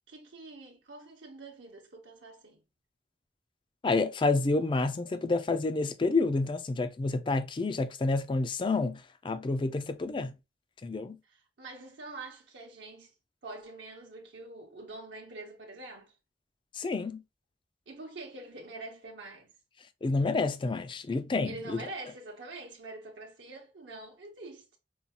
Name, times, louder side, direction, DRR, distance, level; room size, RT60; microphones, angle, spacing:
voice 1, 0.1-2.6 5.0-5.1 11.2-13.1 13.4-16.2 17.9-19.5 21.4-24.8, right 2 dB, 75° right, 0.8 m, -45 dB
voice 2, 3.8-10.3 10.8-11.2 16.7-17.2 20.0-21.9, left 3 dB, 25° left, 0.3 m, -29 dB
5.3 x 2.3 x 2.8 m
head